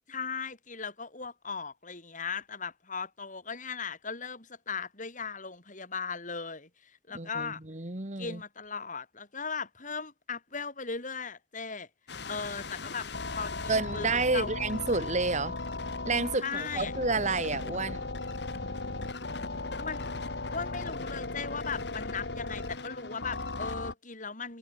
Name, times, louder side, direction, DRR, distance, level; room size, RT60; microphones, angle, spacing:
voice 1, 0.1-7.6 8.2-11.9 12.3-14.5 16.4-16.9 19.8-24.6, left 5 dB, 45° left, 6.9 m, -38 dB
voice 2, 7.1-8.4 13.7-15.5 16.1-18.0, right 3 dB, 40° right, 2.1 m, -30 dB
sound 1, 12.1-23.9, left 3 dB, 70° left, 2.1 m, -37 dB
head